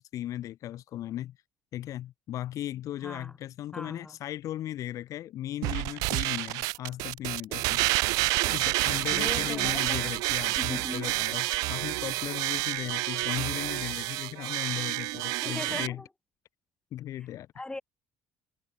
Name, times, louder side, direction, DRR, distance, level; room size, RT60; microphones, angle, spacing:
voice 1, 0.0-1.4 1.7-7.8 8.5-16.0 16.9-17.5, left 13 dB, 60° left, 0.9 m, -37 dB
voice 2, 3.0-3.4 3.7-4.2 8.2-8.5 9.1-10.1 10.6-11.2 15.4-16.1 17.6-17.8, left 2 dB, 15° left, 2.0 m, -39 dB
sound 1, 5.6-15.9, right 23 dB, 75° right, 0.4 m, -29 dB
supercardioid pair, 75°, 6 cm